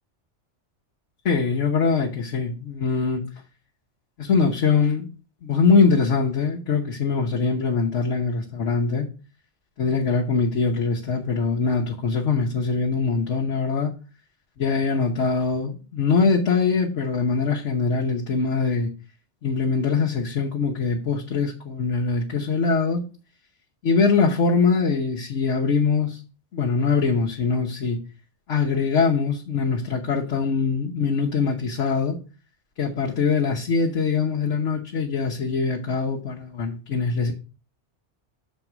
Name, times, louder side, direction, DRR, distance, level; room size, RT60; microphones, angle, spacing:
voice 1, 1.2-3.2 4.2-5.1 5.4-9.1 9.8-13.9 14.6-18.9 19.4-23.0 23.8-26.2 26.5-28.0 28.5-32.2 32.8-37.3, left 5 dB, 85° left, 1.4 m, -22 dB
6.8 x 4.2 x 5.9 m
omnidirectional pair, 1.2 m